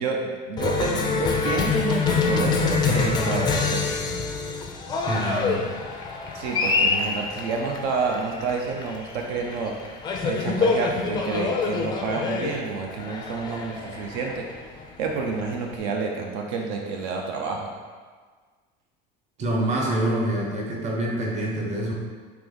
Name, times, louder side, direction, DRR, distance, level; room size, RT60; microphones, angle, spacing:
voice 1, 0.0-3.9 6.3-9.7 10.2-14.4 15.0-17.7, right 4 dB, 75° right, 0 dB, 0.5 m, -29 dB
Cheering, 0.6-15.7, left 4 dB, 20° left, 0.3 m, -26 dB
voice 2, 5.0-5.7 19.4-21.9, right 1 dB, 35° right, -2 dB, 0.7 m, -26 dB
3.3 x 3.0 x 3.8 m, 1.5 s
cardioid pair, 145°, 21 cm